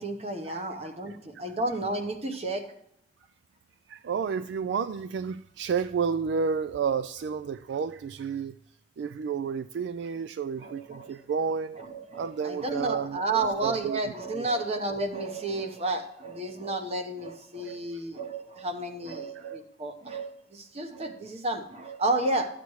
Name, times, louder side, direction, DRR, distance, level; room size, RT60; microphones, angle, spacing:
voice 1, 0.0-2.6 10.6-11.1 11.8-22.5, right 2 dB, 35° right, 1.0 m, -31 dB
voice 2, 3.9-8.6 9.0-11.8 12.1-14.0 14.3-14.5 19.3-19.5, right 6 dB, 70° right, 0.3 m, -31 dB
12.5 x 8.1 x 3.1 m
head